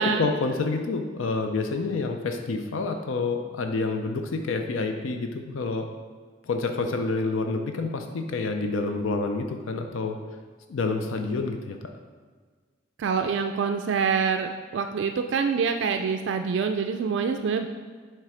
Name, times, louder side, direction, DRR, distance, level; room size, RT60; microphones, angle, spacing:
voice 1, 0.0-5.9 6.4-10.2 10.7-11.9, left 3 dB, 85° left, 5 dB, 0.5 m, -28 dB
voice 2, 13.0-17.7, right 6 dB, 65° right, 6 dB, 0.3 m, -26 dB
7.4 x 3.3 x 4.9 m, 1.5 s
head